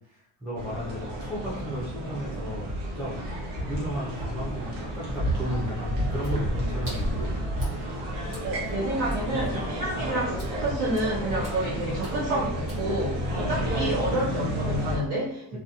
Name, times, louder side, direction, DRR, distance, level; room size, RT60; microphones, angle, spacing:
voice 1, 0.1-3.2 3.6-7.3 13.3-13.5 15.5-15.6, equal, 5° right, -7 dB, 0.4 m, -34 dB
sound 1, 0.6-15.0, equal, 90° right, 1.1 m, -31 dB
Water / Splash splatter, 6.2-13.4, right 1 dB, 30° right, 1.1 m, -47 dB
voice 2, 8.4-15.6, right 1 dB, 65° right, -8 dB, 0.9 m, -29 dB
2.4 x 2.2 x 2.8 m, 0.74 s
cardioid pair, 170°, 41 cm